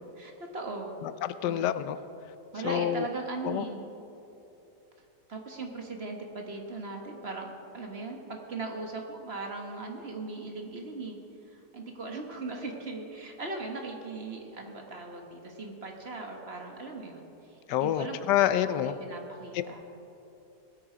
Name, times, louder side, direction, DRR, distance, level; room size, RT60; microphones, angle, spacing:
voice 1, 0.2-0.9 1.4-1.8 2.5-3.8 5.3-7.5 7.7-11.2 11.5-17.3 17.7-18.2 18.6-19.8, right 3 dB, 40° right, 2 dB, 1.5 m, -38 dB
voice 2, 1.0-2.0 2.6-3.1 3.4-3.6 17.7-18.9 19.5-19.6, left 11 dB, 85° left, 13 dB, 1.2 m, -27 dB
20.0 x 8.6 x 5.0 m, 2.9 s
omnidirectional pair, 1.8 m